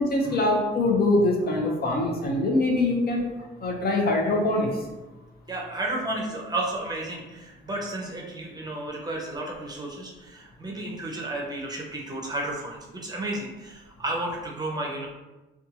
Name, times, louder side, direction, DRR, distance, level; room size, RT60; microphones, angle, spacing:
voice 1, 0.0-3.2 3.6-4.7, left 2 dB, 50° left, 0 dB, 0.6 m, -23 dB
voice 2, 5.5-15.1, right 1 dB, 20° right, -1 dB, 0.6 m, -32 dB
2.6 x 2.3 x 2.7 m, 1.1 s
cardioid pair, 90°, 20 cm